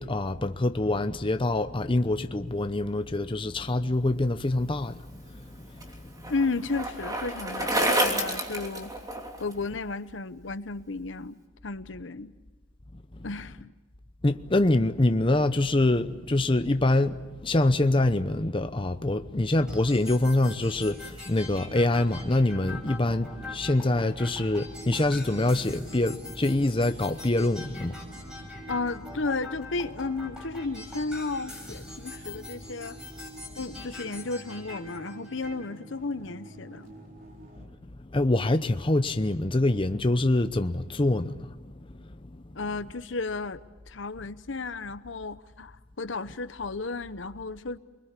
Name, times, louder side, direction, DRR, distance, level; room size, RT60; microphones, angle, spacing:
voice 1, 0.0-5.0 14.2-28.0 38.1-41.5, left 2 dB, 25° left, 0.8 m, -25 dB
Bicycle, 5.1-9.5, right 1 dB, 20° right, 3.2 m, -29 dB
voice 2, 6.3-8.9 9.4-12.3 13.2-13.7 28.7-33.0 33.6-36.9 42.5-47.8, left 3 dB, 70° left, 1.0 m, -33 dB
sound 1, 19.7-35.7, left 2 dB, 5° right, 6.3 m, -44 dB
sound 2, 21.5-37.7, right 1 dB, 45° right, 4.2 m, -47 dB
28.5 x 21.5 x 8.4 m
head